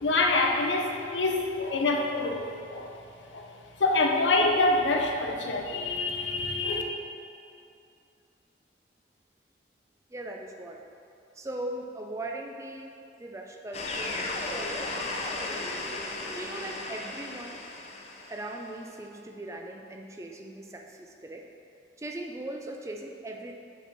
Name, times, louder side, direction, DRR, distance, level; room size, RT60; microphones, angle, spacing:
voice 1, 0.0-2.9 3.3-3.5 3.8-6.8, left 2 dB, 85° left, 1 dB, 0.7 m, -26 dB
voice 2, 10.1-10.8 11.3-14.9 16.3-17.6 18.3-21.4 22.0-23.5, right 1 dB, 15° right, 2 dB, 0.4 m, -39 dB
sound 1, 13.7-18.7, left 2 dB, 35° left, 0.6 m, -35 dB
5.4 x 4.3 x 6.0 m, 2.6 s
head